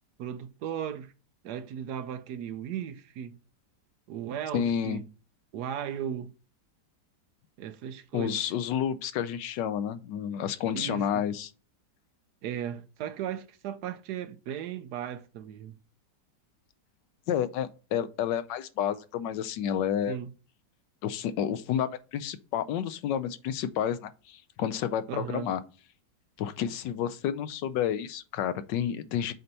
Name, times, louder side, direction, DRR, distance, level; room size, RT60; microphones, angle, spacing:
voice 1, 0.2-1.1 1.4-3.4 4.1-5.0 5.5-6.3 7.6-8.4 10.7-11.2 12.4-15.8 20.1-20.3 25.1-25.5, right 9 dB, 70° right, 1.1 m, -36 dB
voice 2, 4.5-5.0 8.1-11.5 17.3-20.2 21.0-25.6 26.4-29.3, left 9 dB, 85° left, 1.3 m, -30 dB
7.7 x 2.9 x 5.2 m
omnidirectional pair, 1.9 m